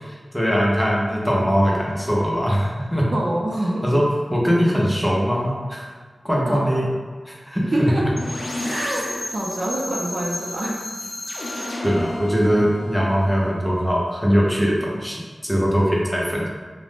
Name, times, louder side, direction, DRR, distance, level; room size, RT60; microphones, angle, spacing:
voice 1, 0.0-3.0 3.8-4.0 4.3-5.9 6.2-6.8 7.3-8.1 11.8-16.5, equal, 10° left, -4 dB, 0.6 m, -21 dB
voice 2, 3.1-3.9 6.5-6.9 7.6-8.0 8.6-10.8, right 1 dB, 65° right, -2 dB, 0.4 m, -26 dB
sound 1, 8.2-14.0, left 1 dB, 65° left, 0.4 m, -32 dB
2.4 x 2.0 x 3.3 m, 1.5 s
wide cardioid pair, 65°, 0 cm